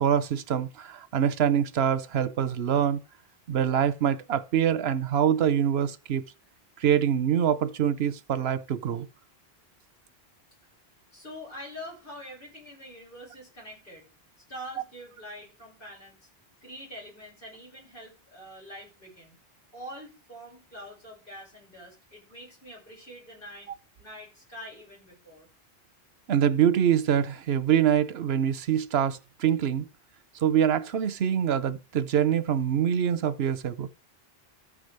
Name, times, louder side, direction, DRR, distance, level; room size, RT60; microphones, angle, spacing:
voice 1, 0.0-3.0 3.5-6.2 6.8-9.1 26.3-29.8 30.4-33.9, right 9 dB, 80° right, 1.0 m, -25 dB
voice 2, 11.1-14.0 14.5-16.1 16.6-19.4 19.7-23.7 24.0-25.5, equal, 60° left, 6.3 m, -45 dB
13.5 x 5.0 x 6.5 m
omnidirectional pair, 1.0 m